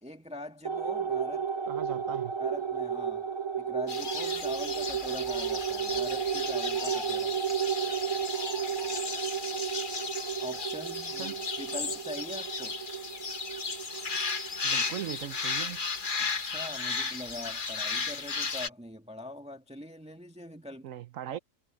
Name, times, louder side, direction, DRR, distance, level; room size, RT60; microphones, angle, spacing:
voice 1, 0.0-1.5 2.4-3.3 3.6-7.3 10.4-12.8 16.2-20.9, left 1 dB, 5° right, 1.5 m, -43 dB
sound 1, 0.6-15.4, right 7 dB, 30° right, 0.4 m, -33 dB
voice 2, 1.7-2.3 11.1-11.5 14.6-15.8 20.8-21.4, right 11 dB, 65° right, 1.0 m, -39 dB
sound 2, 3.9-18.7, left 4 dB, 35° left, 1.2 m, -35 dB
omnidirectional pair, 1.6 m